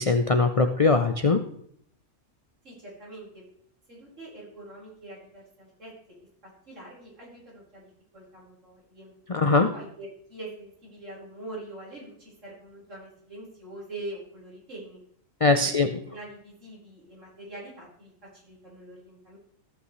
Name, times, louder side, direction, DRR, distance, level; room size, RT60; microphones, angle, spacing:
voice 1, 0.0-1.4 9.3-9.7 15.4-15.9, left 3 dB, 40° left, 7 dB, 0.5 m, -21 dB
voice 2, 2.6-3.5 3.9-9.1 9.7-15.0 15.5-15.7 16.0-19.4, right 2 dB, 65° right, -6 dB, 5.3 m, -44 dB
14.0 x 8.3 x 3.2 m, 0.66 s
omnidirectional pair, 1.4 m